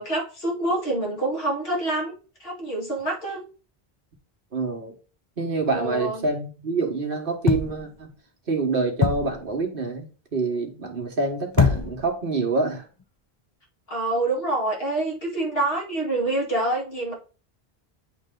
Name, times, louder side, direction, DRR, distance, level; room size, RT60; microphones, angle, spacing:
voice 1, 0.0-3.4 5.7-6.3 13.9-17.1, right 2 dB, 70° left, -1 dB, 2.2 m, -26 dB
voice 2, 4.5-4.9 5.4-8.1 8.5-10.1 10.3-12.9, right 3 dB, 60° right, 2 dB, 1.5 m, -26 dB
sound 1, 7.5-8.0 9.0-9.5 11.5-12.2 13.0-13.1, left 5 dB, 30° left, 0.6 m, -23 dB
9.5 x 3.3 x 3.7 m, 0.36 s
omnidirectional pair, 1.0 m